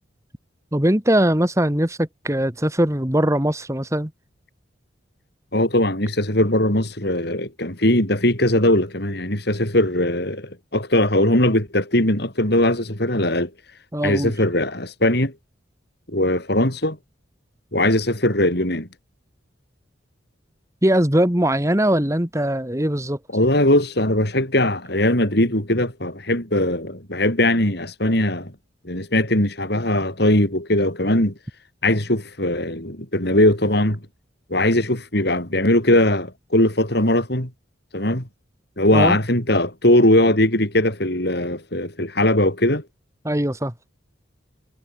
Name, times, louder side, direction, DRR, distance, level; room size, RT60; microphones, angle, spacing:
voice 1, 0.7-4.1 13.9-14.3 20.8-23.2 38.9-39.2 43.2-43.7, right 1 dB, 15° right, 2.2 m, -20 dB
voice 2, 5.5-13.5 14.0-15.3 16.1-17.0 17.7-18.9 23.3-28.5 28.8-31.3 31.8-34.0 34.5-37.5 37.9-38.3 38.8-42.8, left 1 dB, 55° left, 5.8 m, -20 dB
head